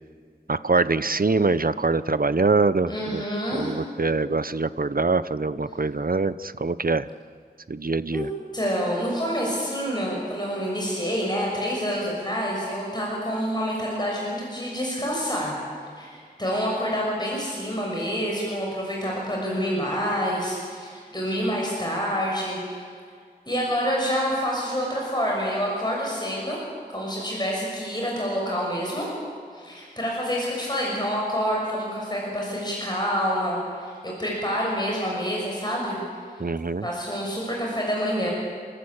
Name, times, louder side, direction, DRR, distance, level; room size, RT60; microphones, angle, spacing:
voice 1, 0.5-3.2 3.5-7.1 7.7-8.3 36.4-36.9, right 3 dB, 55° right, 14 dB, 0.8 m, -24 dB
voice 2, 2.9-3.7 8.1-8.3 8.5-15.5 16.0-22.8 23.5-26.6 26.9-29.1 29.5-36.0 36.8-38.3, equal, 25° left, -3 dB, 6.5 m, -27 dB
30.0 x 14.5 x 8.7 m, 2.1 s
wide cardioid pair, 40°, 17 cm